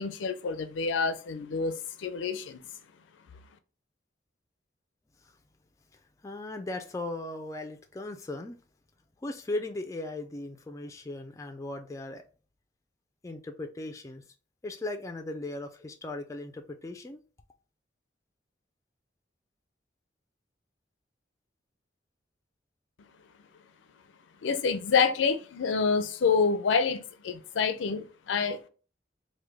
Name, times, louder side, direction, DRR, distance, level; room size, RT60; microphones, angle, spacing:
voice 1, 0.0-2.6 24.4-28.7, left 5 dB, 90° left, 0.4 m, -27 dB
voice 2, 5.9-8.6 9.2-12.2 13.2-14.3 14.6-17.2, left 2 dB, 15° left, 0.3 m, -38 dB
3.1 x 2.2 x 3.4 m
head